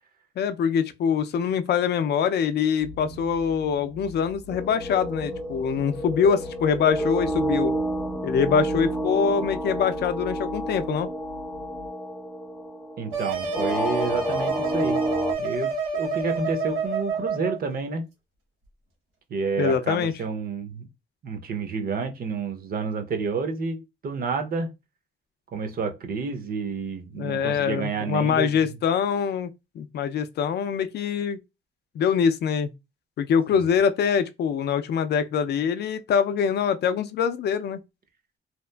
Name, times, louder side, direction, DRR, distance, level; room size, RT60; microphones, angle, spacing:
voice 1, 0.4-7.7 8.2-11.1 19.6-20.1 27.2-29.5 29.8-31.4 32.0-32.7 33.2-37.8, left 7 dB, 55° left, 0.4 m, -24 dB
sound 1, 2.8-11.9, left 1 dB, 75° right, 1.3 m, -43 dB
sound 2, 4.5-15.3, right 1 dB, 5° left, 0.5 m, -30 dB
voice 2, 13.0-15.0 15.4-18.0 19.3-20.9 21.2-24.7 25.5-28.7 33.5-33.7, right 5 dB, 50° right, 0.6 m, -30 dB
sound 3, 13.1-17.6, right 4 dB, 90° right, 0.8 m, -29 dB
2.8 x 2.4 x 2.2 m
cardioid pair, 90°, 20 cm